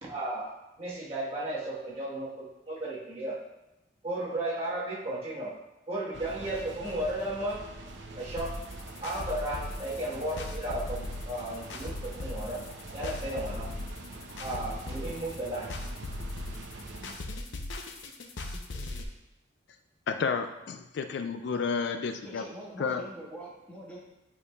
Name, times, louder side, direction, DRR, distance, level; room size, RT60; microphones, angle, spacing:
voice 1, 0.0-3.4 4.0-5.6 5.9-7.6 8.1-8.6 9.0-12.7 12.9-13.7 14.4-15.7, right 1 dB, 30° right, -6 dB, 1.3 m, -34 dB
sound 1, 6.1-17.2, right 2 dB, 75° right, 0.6 m, -44 dB
sound 2, 8.4-19.0, left 2 dB, 80° left, 0.7 m, -38 dB
voice 2, 20.1-22.4 22.8-23.0, left 5 dB, 65° left, 8 dB, 0.3 m, -31 dB
voice 3, 22.2-24.0, right 1 dB, 10° left, -7 dB, 1.5 m, -44 dB
9.3 x 4.6 x 2.3 m, 0.95 s
head